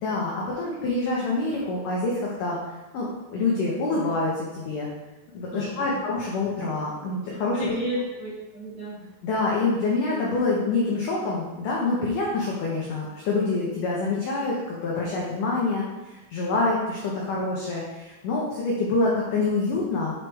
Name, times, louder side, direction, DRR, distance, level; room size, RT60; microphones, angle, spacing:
voice 1, 0.0-2.6 2.9-4.9 5.3-7.8 9.2-15.8 16.1-20.1, left 3 dB, 80° left, -4 dB, 1.8 m, -26 dB
voice 2, 5.5-6.0 7.3-9.1, right 1 dB, 55° right, -10 dB, 2.1 m, -33 dB
7.4 x 4.7 x 3.3 m, 1.1 s
omnidirectional pair, 5.0 m